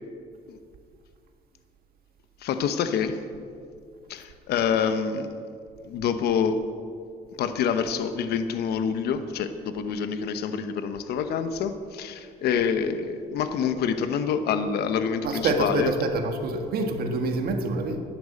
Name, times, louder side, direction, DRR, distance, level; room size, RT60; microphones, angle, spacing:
voice 1, 2.4-3.3 4.1-5.3 5.8-6.6 7.4-15.9, left 7 dB, 70° left, 10 dB, 1.0 m, -27 dB
voice 2, 15.2-18.0, right 3 dB, 60° right, 5 dB, 1.7 m, -26 dB
11.5 x 10.5 x 8.5 m, 2.3 s
cardioid pair, 110°, 17 cm